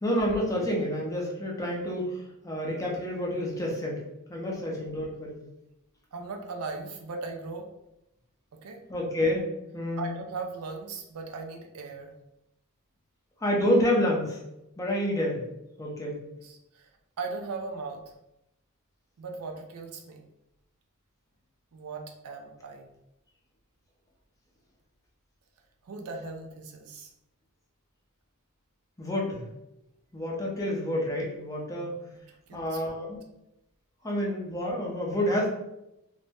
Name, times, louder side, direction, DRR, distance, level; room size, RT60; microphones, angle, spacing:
voice 1, 0.0-4.0 4.3-5.4 8.9-9.5 9.7-10.1 13.4-14.4 14.8-15.4 15.8-16.2 29.0-29.5 30.1-31.9 32.5-33.2 34.0-35.5, left 1 dB, 15° left, -2 dB, 0.5 m, -28 dB
voice 2, 6.1-7.7 8.6-8.8 10.0-12.1 16.4-16.9 17.2-18.2 19.2-20.2 21.7-22.9 25.8-27.1 32.1-32.2 32.5-32.8, right 3 dB, 80° right, 3 dB, 0.4 m, -38 dB
2.6 x 2.0 x 3.3 m, 0.87 s
head